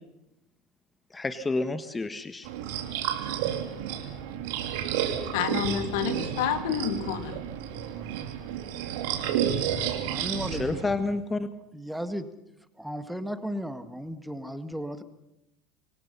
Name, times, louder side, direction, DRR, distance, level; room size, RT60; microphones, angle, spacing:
voice 1, 1.1-2.5 10.6-11.5, left 3 dB, 20° left, 11 dB, 1.6 m, -29 dB
sound 1, 2.4-10.9, right 9 dB, 65° right, 3.2 m, -31 dB
voice 2, 5.3-7.4, left 9 dB, 65° left, 9 dB, 2.6 m, -29 dB
voice 3, 9.7-10.8 11.7-12.3 12.8-15.0, equal, ahead, 10 dB, 2.1 m, -35 dB
27.0 x 23.5 x 5.6 m, 0.90 s
hypercardioid pair, 70°, 0 cm